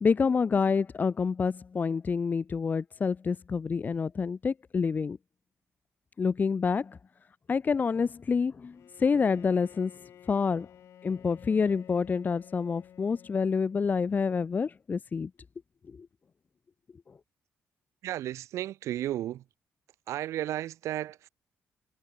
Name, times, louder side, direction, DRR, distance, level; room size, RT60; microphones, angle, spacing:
voice 1, 0.0-5.2 6.2-7.0 7.5-9.9 10.3-10.7 11.0-15.3 16.0-16.1, left 5 dB, 35° left, 1.4 m, -27 dB
Bowed string instrument, 8.7-14.2, left 10 dB, 70° left, 3.3 m, -53 dB
voice 2, 18.0-19.4 20.1-21.3, right 13 dB, 85° right, 3.2 m, -33 dB
cardioid pair, 105°, 5 cm